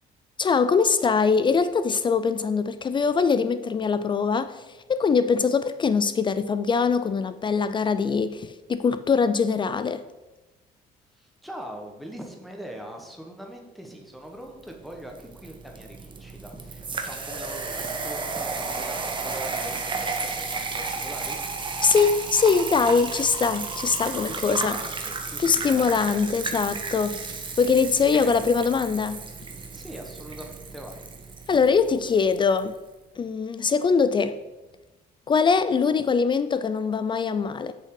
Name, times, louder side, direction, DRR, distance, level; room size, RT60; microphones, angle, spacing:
voice 1, 0.4-4.6 4.9-10.0 21.8-24.8 25.4-27.2 27.6-29.2 31.5-32.7 33.2-34.4 35.3-37.7, left 5 dB, 30° left, 0.4 m, -22 dB
voice 2, 11.1-21.4 24.2-26.2 28.1-28.5 29.7-31.1, equal, ahead, 1.2 m, -41 dB
sound 1, 14.7-32.7, right 4 dB, 30° right, 1.0 m, -33 dB
6.7 x 5.7 x 4.8 m
cardioid pair, 110°, 17 cm